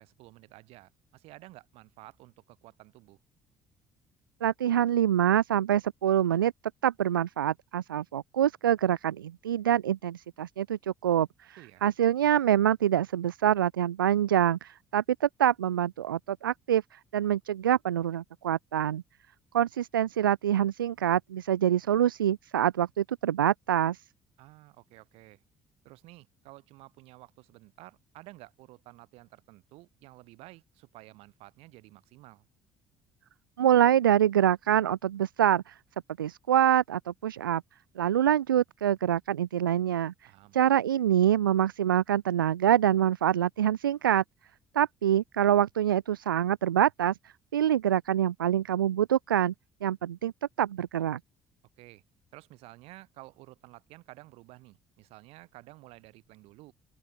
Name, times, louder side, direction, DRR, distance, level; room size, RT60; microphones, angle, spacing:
voice 1, 0.0-3.2 11.6-11.8 24.4-25.4 25.8-32.5 40.2-40.6 51.8-52.0 52.3-56.7, right 20 dB, 65° right, 7.4 m, -52 dB
voice 2, 4.4-6.5 6.8-11.5 11.8-16.8 17.1-19.0 19.5-24.0 33.6-35.7 36.2-37.6 38.0-40.1 40.5-44.2 44.7-47.2 47.5-49.5 49.8-50.3 50.6-51.2, right 10 dB, 80° right, 0.8 m, -25 dB
open air
figure-of-eight pair, 50°, 11 cm